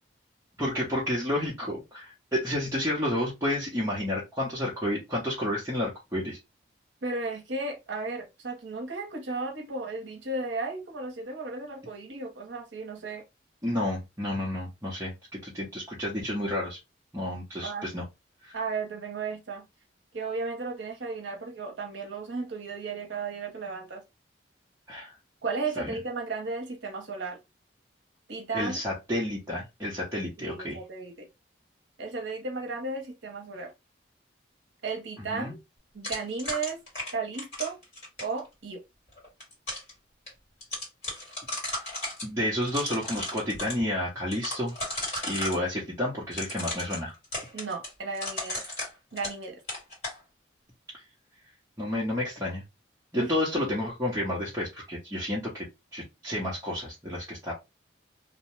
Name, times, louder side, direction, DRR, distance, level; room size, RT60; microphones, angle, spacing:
voice 1, 0.6-6.4 13.6-16.8 17.1-18.0 18.4-18.5 24.9-25.1 25.8-25.9 28.5-30.8 35.3-35.5 42.2-44.7 45.2-47.1 51.8-52.6 53.1-55.7 55.9-57.5, left 1 dB, 15° right, 0.7 m, -30 dB
voice 2, 7.0-13.2 17.6-17.9 18.5-19.7 20.1-24.0 25.4-27.4 28.3-28.8 30.4-31.3 32.0-33.7 34.8-35.6 35.9-36.8 37.1-37.8 38.2-38.8 47.5-48.6 49.1-49.6 53.1-53.3, right 3 dB, 75° right, 0.6 m, -34 dB
sound 1, 36.0-38.4 39.2-39.9 40.3-40.4 40.6-42.3 42.6-43.8 44.3-45.6 46.3-49.4 49.7-50.2, left 1 dB, 35° left, 1.7 m, -35 dB
2.7 x 2.0 x 3.1 m
head